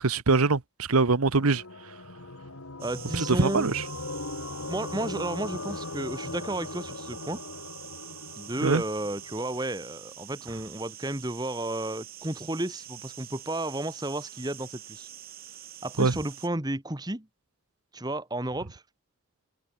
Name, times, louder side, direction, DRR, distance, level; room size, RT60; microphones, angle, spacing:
voice 1, 0.0-1.6 3.1-3.8 8.6-8.8 16.0-16.1, right 3 dB, 80° right, 1.1 m, -23 dB
sound 1, 1.4-9.7, left 2 dB, 75° left, 2.8 m, -39 dB
voice 2, 2.8-3.7 4.7-7.4 8.4-15.1 15.8-17.3 17.9-18.8, right 1 dB, 20° right, 1.5 m, -32 dB
sound 2, 2.8-16.5, right 11 dB, 40° right, 5.4 m, -46 dB
head